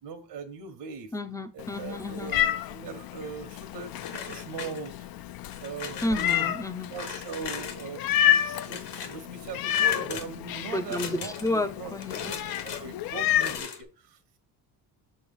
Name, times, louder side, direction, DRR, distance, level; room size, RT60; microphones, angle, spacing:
voice 1, 0.0-1.1 1.5-4.9 5.6-6.5 6.9-11.9 12.2-14.2, right 5 dB, 75° right, 6 dB, 1.1 m, -40 dB
voice 2, 1.1-2.3 6.0-6.9 10.7-12.3, left 1 dB, 10° left, 9 dB, 0.5 m, -31 dB
Meow, 1.6-13.6, left 11 dB, 60° left, 0.5 m, -30 dB
sound 1, 4.0-5.1 5.5-6.4 6.9-7.9 8.3-9.2 9.6-10.3 10.8-11.6 12.0-12.8 13.2-13.8, left 7 dB, 80° left, 1.3 m, -38 dB
6.8 x 3.2 x 5.3 m, 0.33 s
cardioid pair, 145°, 41 cm